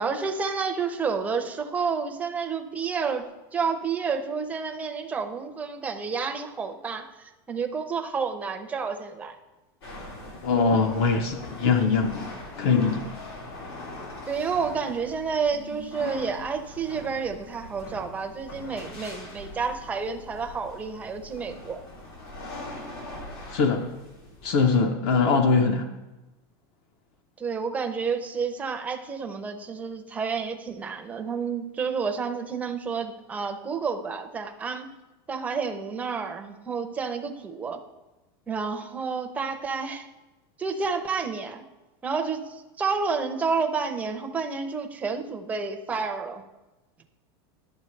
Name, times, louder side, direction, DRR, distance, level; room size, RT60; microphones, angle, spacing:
voice 1, 0.0-9.3 14.3-21.8 27.4-34.9 35.3-37.8 38.5-40.1 40.6-41.6 42.0-46.4, right 5 dB, 10° right, 5 dB, 0.5 m, -30 dB
sound 1, 9.8-24.8, left 1 dB, 90° left, 2.7 m, -41 dB
voice 2, 10.4-12.3 12.6-13.1 23.5-23.9 24.4-25.9, left 4 dB, 50° left, 6 dB, 0.7 m, -22 dB
11.0 x 7.2 x 3.2 m, 1.1 s
supercardioid pair, 160°, 13 cm